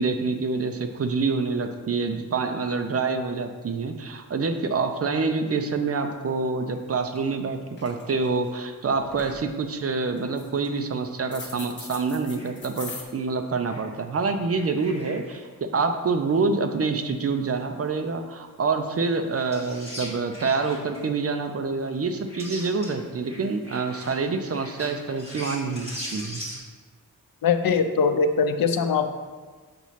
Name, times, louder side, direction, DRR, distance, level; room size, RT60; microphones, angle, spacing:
voice 1, 0.0-26.4, right 4 dB, 45° right, 6 dB, 0.5 m, -27 dB
sound 1, 6.7-6.8 7.2-7.4 7.7-8.5 8.9-9.4 10.2-10.8 11.3-13.0, left 3 dB, 35° left, 0.8 m, -41 dB
sound 2, 12.3-12.5 13.6-13.8 14.2-15.4 19.0-19.1 19.3-21.1 21.9-22.0 22.2-23.0 23.2-26.6, equal, 20° right, 1.6 m, -40 dB
voice 2, 27.4-29.1, left 5 dB, 90° left, 8 dB, 0.6 m, -22 dB
6.9 x 3.1 x 5.6 m, 1.4 s
wide cardioid pair, 170°, 34 cm